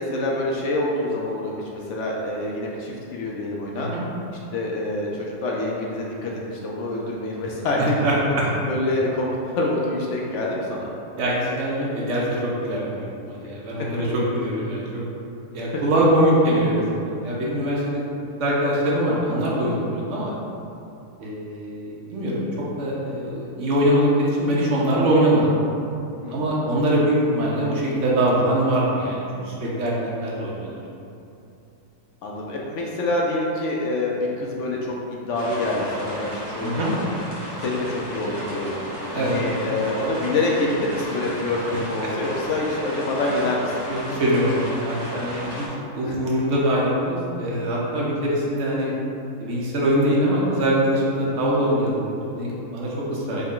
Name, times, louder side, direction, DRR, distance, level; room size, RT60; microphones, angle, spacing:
voice 1, 0.0-3.9 4.5-8.0 8.7-10.9 14.0-14.1 15.7-15.8 19.2-19.3 26.2-26.5 32.2-36.8 37.0-37.2 37.6-38.8 39.1-43.8 46.0-46.2 51.3-51.4, left 2 dB, 65° left, -3 dB, 0.7 m, -26 dB
voice 2, 11.2-15.0 15.5-18.0 18.4-20.3 21.2-22.5 22.8-25.5 26.3-29.9 30.2-30.7 36.6-36.9 39.1-39.3 43.9-44.5 44.8-45.7 45.9-48.9 49.4-53.4, right 1 dB, 55° right, -5 dB, 1.0 m, -23 dB
sound 1, 35.3-45.7, equal, 40° right, 1.1 m, -34 dB
5.3 x 2.2 x 3.7 m, 2.7 s
omnidirectional pair, 1.7 m